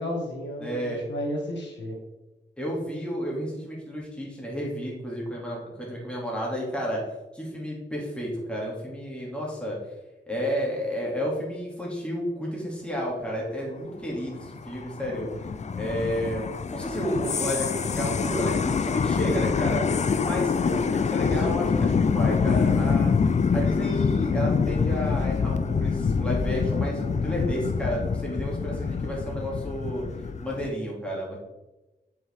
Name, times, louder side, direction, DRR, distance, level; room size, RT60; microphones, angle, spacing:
voice 1, 0.0-2.0 20.6-20.9 21.1-21.2, left 1 dB, 85° left, -2 dB, 1.8 m, -33 dB
voice 2, 0.6-1.0 2.6-7.0 7.3-9.8 10.3-15.3 15.7-23.1 23.5-30.0 30.4-31.4, equal, 5° left, -4 dB, 2.5 m, -31 dB
sound 1, 14.2-30.7, left 5 dB, 40° left, 0.4 m, -26 dB
7.3 x 5.5 x 3.6 m, 1.0 s
wide cardioid pair, 90°, 18 cm